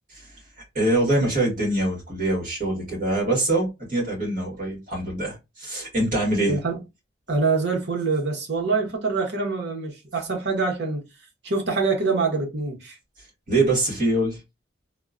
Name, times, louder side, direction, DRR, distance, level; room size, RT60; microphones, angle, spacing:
voice 1, 0.7-6.6 13.5-14.4, right 1 dB, 45° right, 1.9 m, -24 dB
voice 2, 6.5-6.8 7.3-11.1 11.4-13.0, right 4 dB, 70° right, 1.0 m, -25 dB
3.5 x 2.3 x 2.5 m
head